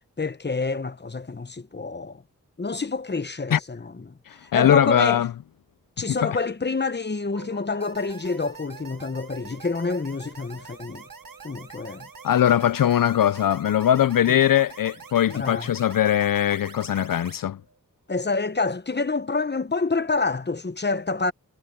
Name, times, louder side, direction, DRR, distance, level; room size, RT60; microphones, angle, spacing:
voice 1, 0.2-2.2 2.6-4.1 4.4-5.2 6.0-11.1 11.4-12.1 14.3-14.4 15.3-15.7 18.1-21.3, left 3 dB, 30° left, 1.0 m, -27 dB
voice 2, 4.3-5.3 6.2-6.4 12.2-17.6, left 10 dB, 75° left, 0.5 m, -21 dB
sound 1, 7.3-17.8, right 4 dB, 55° right, 3.9 m, -51 dB
sound 2, 7.8-17.4, right 5 dB, 80° right, 1.6 m, -46 dB
wide cardioid pair, 60°, 34 cm